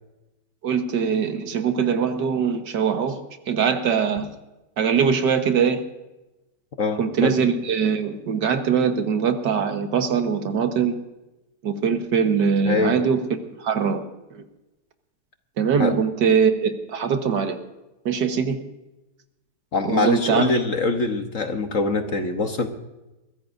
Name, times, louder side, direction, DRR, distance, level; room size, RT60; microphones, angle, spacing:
voice 1, 0.6-3.2 3.5-4.3 4.8-5.8 7.0-11.0 11.6-13.2 13.6-14.0 14.3-14.4 15.6-17.6 18.1-18.6 19.9-20.5, right 6 dB, 75° right, 7 dB, 1.9 m, -22 dB
voice 2, 6.8-7.3 12.6-13.0 15.8-15.9 19.7-22.7, left 3 dB, 50° left, 6 dB, 1.3 m, -23 dB
22.5 x 15.5 x 2.6 m, 1.0 s
omnidirectional pair, 1.9 m